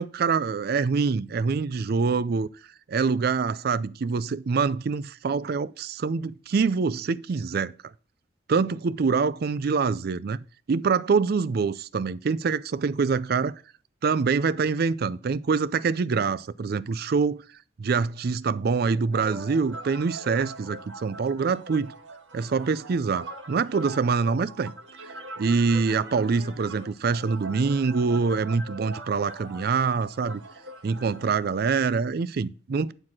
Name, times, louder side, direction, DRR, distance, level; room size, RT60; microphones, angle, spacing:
voice 1, 0.0-2.5 2.9-7.7 8.5-10.4 10.7-13.5 14.0-17.4 17.8-21.9 22.3-24.7 25.4-30.4 30.8-32.9, right 5 dB, 55° right, 0.4 m, -25 dB
sound 1, 19.1-31.5, right 1 dB, 85° right, 1.8 m, -42 dB
9.7 x 4.6 x 5.9 m
head